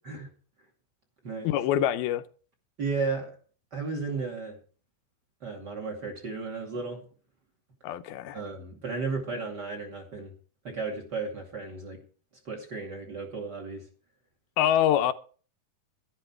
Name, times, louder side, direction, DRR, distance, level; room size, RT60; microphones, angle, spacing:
voice 1, 1.4-2.2 7.8-8.4 14.6-15.1, left 11 dB, 85° left, 2.7 m, -25 dB
voice 2, 2.8-3.3 3.7-4.6 5.4-7.0 8.3-10.3 10.6-12.0 12.4-13.8, right 4 dB, 30° right, 2.5 m, -34 dB
12.0 x 12.0 x 4.5 m
omnidirectional pair, 4.3 m